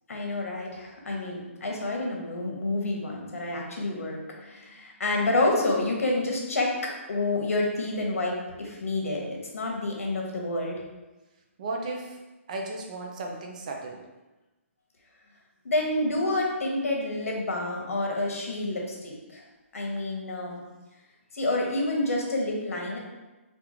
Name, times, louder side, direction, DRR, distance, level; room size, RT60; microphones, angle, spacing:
voice 1, 0.1-10.8 15.6-19.4 19.7-20.6 21.3-23.0, left 2 dB, 80° left, 0 dB, 1.0 m, -28 dB
voice 2, 11.6-12.2 12.5-14.0, right 2 dB, 30° right, 1 dB, 0.4 m, -35 dB
3.5 x 2.4 x 2.9 m, 1.1 s
hypercardioid pair, 170°, 8 cm